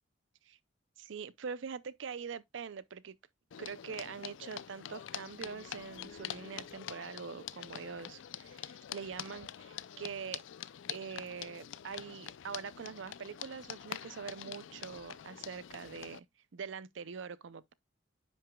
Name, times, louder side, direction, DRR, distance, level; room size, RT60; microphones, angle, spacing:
voice 1, 1.0-3.1 3.6-10.4 10.9-16.3 16.5-17.7, right 6 dB, 75° right, 0.5 m, -44 dB
sound 1, 3.5-16.2, left 10 dB, 80° left, 0.4 m, -45 dB
9.9 x 6.0 x 2.2 m
head